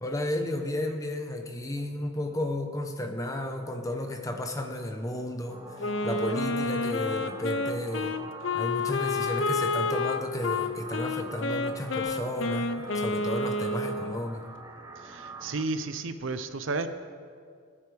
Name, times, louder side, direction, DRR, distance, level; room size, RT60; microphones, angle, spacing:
voice 1, 0.0-8.1 8.5-14.5, left 1 dB, 15° left, 4 dB, 0.9 m, -33 dB
sound 1, 5.5-15.6, right 3 dB, 15° right, 0.9 m, -45 dB
Wind instrument woodwind instrument, 5.8-14.2, left 3 dB, 65° left, 0.6 m, -30 dB
voice 2, 15.0-16.9, right 3 dB, 70° right, 10 dB, 0.6 m, -32 dB
20.5 x 9.8 x 3.4 m, 2.1 s
head